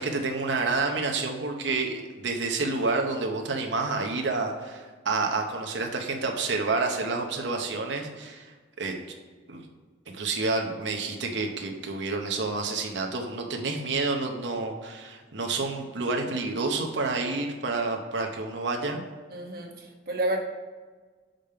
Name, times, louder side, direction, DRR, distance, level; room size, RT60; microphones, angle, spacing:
voice 1, 0.0-9.0 9.5-9.7 10.1-19.0, right 3 dB, 80° right, 2 dB, 0.8 m, -29 dB
voice 2, 19.3-20.4, right 1 dB, 55° right, 1 dB, 1.1 m, -30 dB
5.2 x 5.1 x 5.5 m, 1.4 s
head